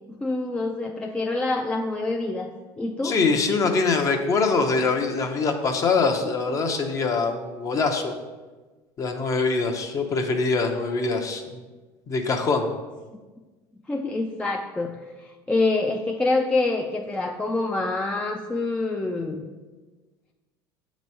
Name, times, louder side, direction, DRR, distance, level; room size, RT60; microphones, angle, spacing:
voice 1, 0.2-2.5 2.8-3.2 13.9-19.4, left 2 dB, 10° left, 2 dB, 0.4 m, -26 dB
voice 2, 3.0-8.1 9.0-11.6 12.1-12.7, left 4 dB, 35° left, 5 dB, 0.8 m, -23 dB
7.5 x 3.1 x 5.4 m, 1.3 s
supercardioid pair, 125°, 9 cm